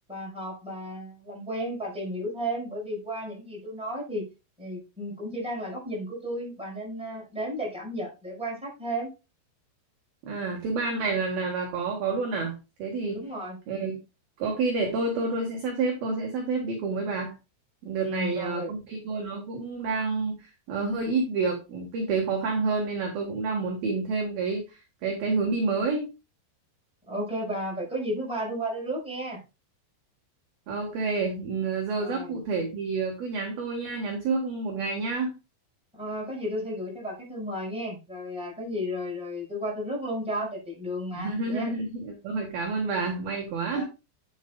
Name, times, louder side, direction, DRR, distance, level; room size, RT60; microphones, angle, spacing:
voice 1, 0.1-4.2 4.6-9.1 13.1-13.6 18.0-18.7 27.1-29.4 32.0-32.4 35.9-41.7 43.7-43.8, equal, ahead, -3 dB, 4.8 m, -33 dB
voice 2, 10.2-13.3 13.7-14.0 14.4-17.4 17.8-26.1 30.7-35.3 41.1-43.8, right 4 dB, 65° right, 1 dB, 2.7 m, -29 dB
10.5 x 8.1 x 2.3 m, 0.28 s
omnidirectional pair, 5.8 m